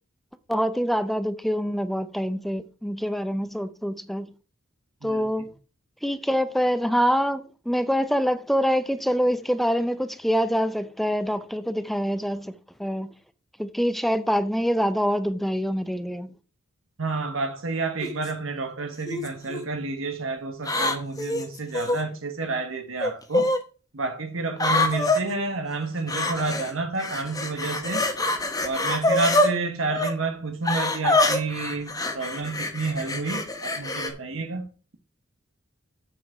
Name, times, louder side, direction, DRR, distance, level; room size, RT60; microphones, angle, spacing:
voice 1, 0.5-4.3 5.0-5.5 6.0-12.5 12.8-13.1 13.6-16.3, equal, ahead, 0.6 m, -25 dB
voice 2, 17.0-23.5 23.9-28.1 28.6-34.7, right 3 dB, 80° right, 1.2 m, -30 dB
sound 1, 18.0-18.3 19.1-19.6 20.6-22.0 23.0-23.6 24.6-25.2 26.1-26.7 27.0-29.5 29.9-30.1 30.6-34.1, left 2 dB, 20° left, 1.3 m, -25 dB
7.6 x 7.1 x 4.9 m
head